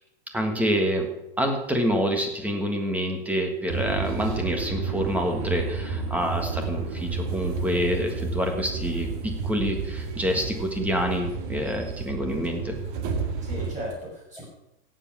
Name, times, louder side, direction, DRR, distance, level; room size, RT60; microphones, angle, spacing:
voice 1, 0.3-1.1 1.4-12.7, equal, 5° right, 3 dB, 1.5 m, -27 dB
sound 1, 3.7-13.7, right 4 dB, 55° right, 2.1 m, -31 dB
voice 2, 12.1-12.4 13.4-14.5, right 1 dB, 25° right, -3 dB, 6.1 m, -37 dB
16.5 x 7.6 x 6.1 m, 0.89 s
supercardioid pair, 160°, 31 cm